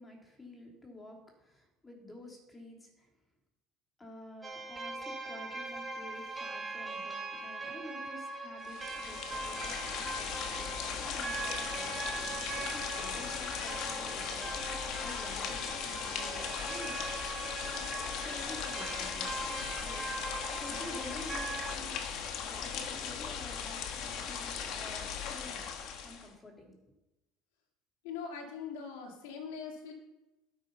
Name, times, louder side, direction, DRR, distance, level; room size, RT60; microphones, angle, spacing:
voice 1, 0.0-3.1 4.0-14.5 15.0-17.0 18.1-22.2 22.5-25.7 26.0-26.8, left 2 dB, 15° left, 1 dB, 3.2 m, -50 dB
sound 1, 4.4-21.8, right 3 dB, 15° right, 2.3 m, -41 dB
sound 2, 8.6-26.3, left 7 dB, 60° left, 1.7 m, -38 dB
voice 2, 28.0-29.9, left 6 dB, 90° left, 2 dB, 2.8 m, -41 dB
13.0 x 8.5 x 5.5 m, 0.98 s
supercardioid pair, 120°, 0 cm